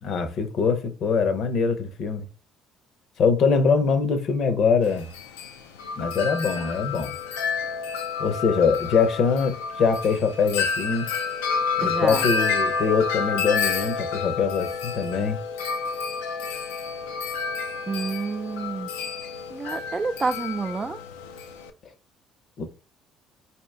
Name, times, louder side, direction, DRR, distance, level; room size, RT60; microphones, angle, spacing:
voice 1, 0.0-2.2 3.2-5.1 6.0-7.1 8.2-11.1 11.8-15.4 22.6-22.7, left 5 dB, 60° left, 0.8 m, -23 dB
Wind chime, 4.8-21.7, left 5 dB, 85° left, 0.4 m, -29 dB
voice 2, 11.8-12.3 17.9-18.9 19.5-21.0, right 4 dB, 30° right, 0.3 m, -29 dB
4.4 x 2.9 x 3.3 m
hypercardioid pair, 55°, 0 cm